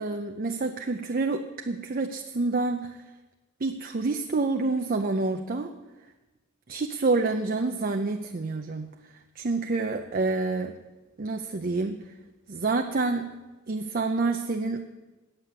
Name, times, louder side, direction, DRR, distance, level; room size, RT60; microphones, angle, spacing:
voice 1, 0.0-3.0 3.6-5.7 6.7-8.9 9.4-10.7 11.2-12.0 12.5-13.3 13.7-14.9, right 3 dB, 40° right, 5 dB, 0.5 m, -28 dB
9.7 x 8.8 x 7.5 m, 1.1 s
head